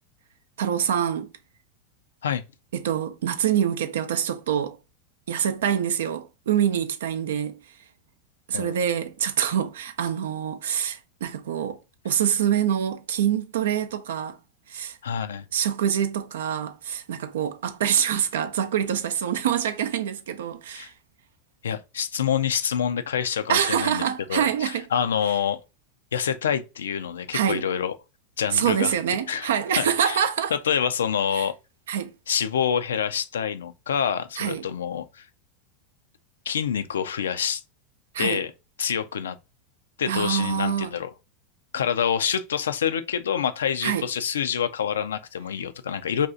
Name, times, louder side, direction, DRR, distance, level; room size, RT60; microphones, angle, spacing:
voice 1, 0.6-1.3 2.7-4.8 5.3-7.6 8.5-11.8 12.0-14.4 14.7-15.0 15.5-20.9 23.5-24.9 27.3-27.6 28.5-30.5 31.3-31.5 31.9-32.1 34.4-34.6 38.1-38.4 40.1-40.9 43.8-44.1, right 9 dB, 80° right, 0.4 m, -25 dB
voice 2, 15.0-15.4 20.7-20.9 21.6-24.0 24.3-25.6 26.1-27.9 28.4-28.9 29.3-29.5 29.8-30.2 30.7-31.5 32.3-35.3 36.5-37.6 38.2-38.5 38.8-39.4 40.0-41.1 41.7-46.3, left 8 dB, 90° left, 0.3 m, -26 dB
2.6 x 2.3 x 3.7 m
hypercardioid pair, 110°, 0 cm